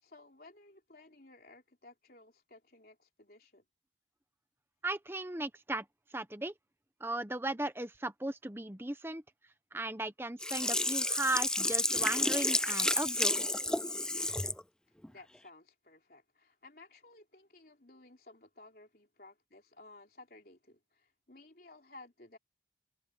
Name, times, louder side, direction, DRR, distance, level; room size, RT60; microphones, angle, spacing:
voice 1, 0.0-3.7 15.1-22.4, left 2 dB, 55° left, 3.7 m, -56 dB
voice 2, 4.8-5.8 6.1-6.5 7.0-9.2 9.7-13.5, right 2 dB, 15° right, 0.9 m, -36 dB
Sink (filling or washing), 10.4-14.6 15.0-15.1, left 2 dB, 5° left, 0.3 m, -31 dB
head